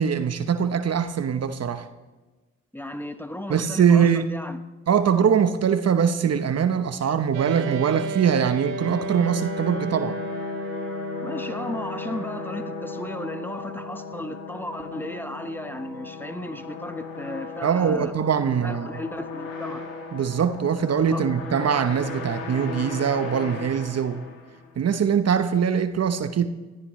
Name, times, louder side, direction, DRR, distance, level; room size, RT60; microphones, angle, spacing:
voice 1, 0.0-1.9 3.5-4.4 4.9-10.2 17.6-18.9 20.1-24.2 24.8-26.5, right 7 dB, 50° right, 1.0 m, -22 dB
voice 2, 2.7-4.6 11.2-18.1 18.5-19.8 21.1-21.3, left 1 dB, 5° left, 1.2 m, -35 dB
sound 1, 7.3-18.9, right 1 dB, 85° right, 1.4 m, -35 dB
sound 2, 8.5-24.8, left 5 dB, 75° left, 3.0 m, -38 dB
19.5 x 14.5 x 3.2 m
hypercardioid pair, 50°, 33 cm